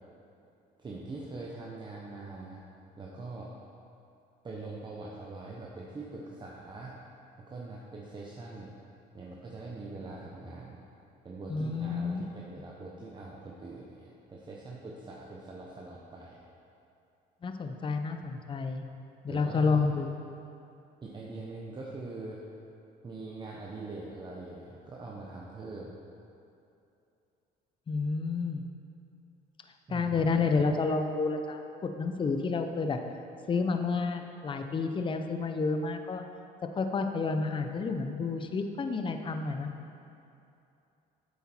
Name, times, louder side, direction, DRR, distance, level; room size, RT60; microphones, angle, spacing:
voice 1, 0.8-2.6 3.0-3.5 4.4-7.0 7.4-8.7 9.1-10.8 11.2-16.4 19.3-19.9 21.0-22.4 23.0-25.9 29.9-30.4, right 3 dB, 25° right, -4 dB, 1.0 m, -43 dB
voice 2, 11.5-12.2 17.4-18.8 19.2-20.1 27.9-28.7 29.9-33.0 33.5-36.2 36.7-39.7, left 4 dB, 30° left, 6 dB, 0.7 m, -30 dB
8.4 x 8.2 x 4.5 m, 2.7 s
cardioid pair, 110°, 17 cm